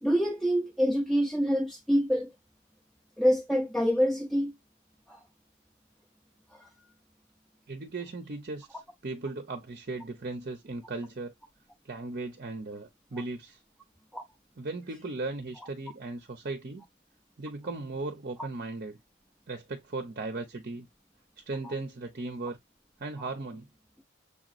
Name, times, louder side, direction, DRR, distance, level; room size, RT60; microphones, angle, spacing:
voice 1, 0.0-2.3 3.2-4.5 5.1-5.2 6.5-6.7 14.1-14.2 21.6-21.7, equal, ahead, 0.5 m, -26 dB
voice 2, 7.7-11.3 11.8-13.6 14.6-16.8 17.4-19.0 19.5-20.9 21.4-22.6 23.0-23.7, right 3 dB, 45° right, 0.7 m, -37 dB
6.8 x 3.0 x 2.5 m
head